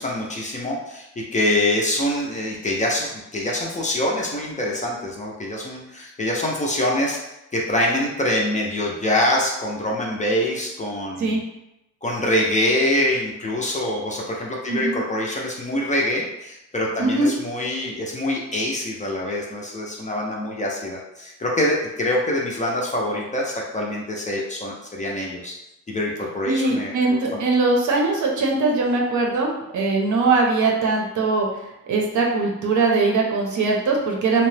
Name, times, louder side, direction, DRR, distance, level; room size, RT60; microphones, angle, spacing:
voice 1, 0.0-7.2 7.5-11.4 12.0-25.5 25.9-27.4, left 1 dB, 25° left, -2 dB, 0.4 m, -25 dB
voice 2, 14.7-15.0 17.0-17.3 26.5-31.5 31.9-34.5, right 3 dB, 65° right, -1 dB, 0.6 m, -21 dB
2.8 x 2.0 x 3.1 m, 0.90 s
wide cardioid pair, 165°, 32 cm